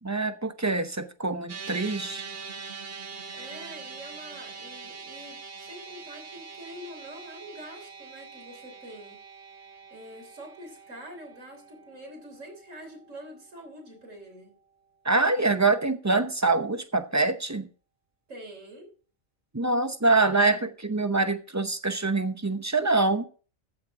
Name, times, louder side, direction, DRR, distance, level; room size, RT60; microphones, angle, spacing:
voice 1, 0.0-2.2 15.0-17.7 19.5-23.2, right 3 dB, 20° right, 0.6 m, -25 dB
sound 1, 1.5-13.9, right 5 dB, 50° right, 1.3 m, -44 dB
voice 2, 3.3-9.2 9.9-14.5 18.3-18.9, equal, 85° right, 3.7 m, -45 dB
14.5 x 7.5 x 3.7 m
omnidirectional pair, 1.3 m